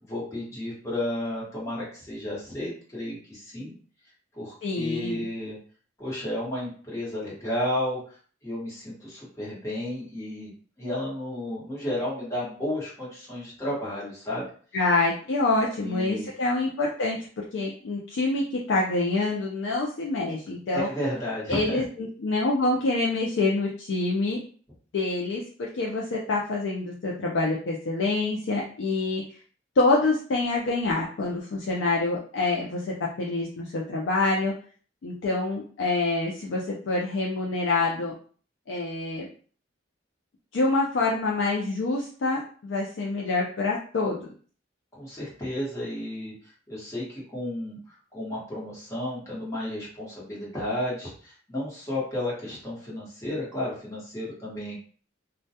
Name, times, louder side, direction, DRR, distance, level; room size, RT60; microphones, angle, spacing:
voice 1, 0.1-3.7 4.3-5.6 6.0-8.0 8.4-10.5 10.8-14.5 15.8-16.3 20.7-21.8 44.9-46.3 46.7-54.8, left 1 dB, 15° left, -7 dB, 1.0 m, -32 dB
voice 2, 4.6-5.3 14.7-20.9 21.5-24.4 24.9-29.2 29.8-34.5 35.0-38.1 38.7-39.3 40.5-44.3, left 3 dB, 70° left, -2 dB, 0.4 m, -26 dB
2.2 x 2.2 x 2.7 m, 0.43 s
head